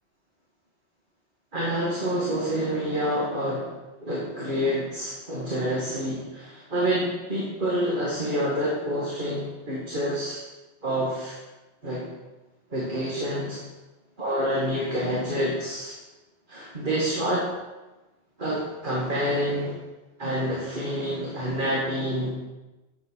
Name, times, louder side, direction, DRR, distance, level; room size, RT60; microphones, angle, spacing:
voice 1, 1.5-3.7 4.0-10.4 10.8-11.4 11.8-12.1 12.7-13.6 14.2-15.9 16.5-17.5 18.4-19.8 20.2-22.3, equal, 45° right, -6 dB, 2.1 m, -27 dB
10.5 x 7.5 x 4.6 m, 1.1 s
omnidirectional pair, 1.1 m